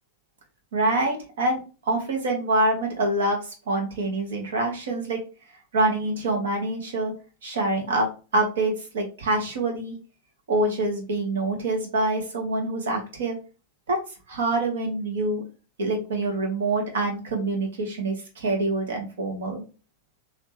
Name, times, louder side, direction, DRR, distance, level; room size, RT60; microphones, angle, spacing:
voice 1, 0.7-5.2 5.7-7.1 7.4-10.0 10.5-13.4 13.9-14.0 14.3-15.4 15.8-19.6, right 2 dB, 60° right, 1 dB, 1.3 m, -26 dB
3.2 x 2.8 x 3.1 m, 0.33 s
figure-of-eight pair, 90°, 0 cm